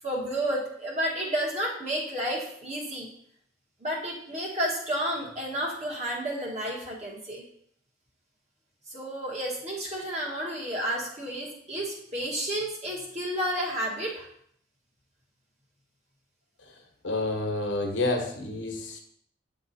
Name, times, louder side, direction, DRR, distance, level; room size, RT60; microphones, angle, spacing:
voice 1, 0.0-3.1 3.8-7.4 8.9-14.3, right 1 dB, 35° right, -3 dB, 1.7 m, -31 dB
voice 2, 17.0-19.0, left 2 dB, 75° left, 2 dB, 1.2 m, -29 dB
8.6 x 3.7 x 4.2 m, 0.68 s
head